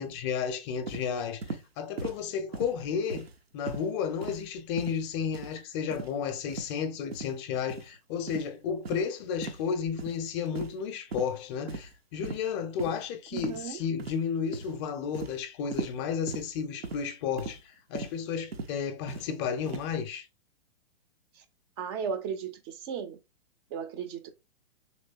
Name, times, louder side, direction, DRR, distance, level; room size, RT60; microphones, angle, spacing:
voice 1, 0.0-3.3 3.5-20.3, left 7 dB, 30° left, 0.5 m, -32 dB
sound 1, 0.9-1.1 1.4-1.6 2.0-2.2 2.5-2.8 3.1-3.4 3.7-3.9 4.2-4.5 4.8-5.0 5.3-5.6 5.9-6.1 6.5-6.7 7.1-7.3 7.7-7.9 8.3-8.5 8.9-9.1 9.4-9.6 10.0-10.2 10.6-10.8 11.1-11.3 11.7-12.0 12.2-12.4 12.8-12.9 13.4-13.7 14.0-14.3 14.5-14.8 15.1-15.4 15.7-16.0 16.3-16.5 16.8-17.0 17.4-17.6 18.0-18.1 18.5-18.7 19.1-19.3 19.7-19.9, right 4 dB, 85° right, 0.7 m, -38 dB
voice 2, 13.3-13.8 21.3-21.4 21.8-23.2 23.7-24.3, right 7 dB, 25° right, 0.4 m, -35 dB
3.2 x 3.1 x 2.6 m
figure-of-eight pair, 115°, 30 cm